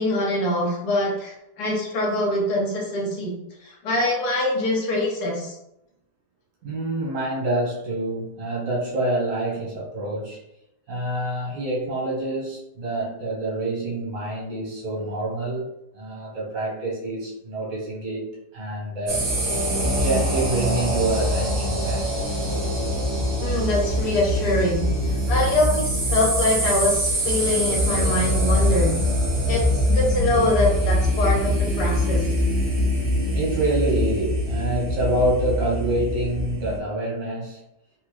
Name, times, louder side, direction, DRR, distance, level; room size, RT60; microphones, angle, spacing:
voice 1, 0.0-3.3 3.6-5.6 23.4-24.9 25.3-29.0 29.5-32.3, left 1 dB, 70° left, -2 dB, 1.3 m, -24 dB
voice 2, 6.6-10.4 10.9-15.7 15.9-19.3 19.8-22.3 33.3-37.6, right 2 dB, 90° right, -4 dB, 1.7 m, -27 dB
sound 1, 19.1-36.8, equal, 55° right, 1.1 m, -23 dB
3.6 x 2.1 x 3.1 m, 0.84 s
omnidirectional pair, 1.8 m